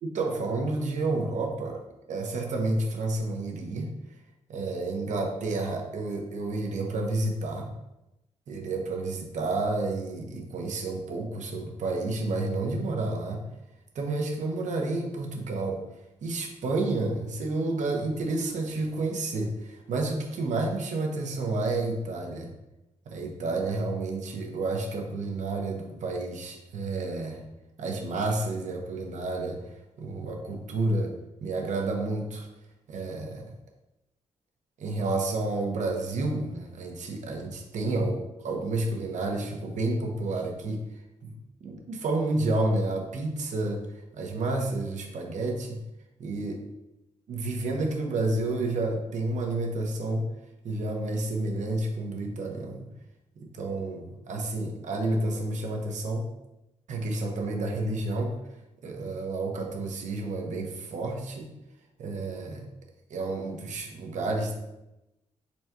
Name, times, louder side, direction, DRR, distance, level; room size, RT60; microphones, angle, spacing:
voice 1, 0.0-1.8 2.1-3.9 4.5-7.7 8.5-13.4 13.9-15.8 16.2-22.5 23.1-27.4 27.8-31.1 31.4-32.5 32.9-33.5 34.8-40.8 41.2-41.3 41.6-45.8 46.2-46.6 47.3-50.3 50.6-52.9 53.4-56.3 56.9-58.4 58.8-61.5 62.0-62.7 63.1-64.5, right 2 dB, 70° right, 2 dB, 0.8 m, -30 dB
4.0 x 2.3 x 4.5 m, 0.94 s
cardioid pair, 90°, 13 cm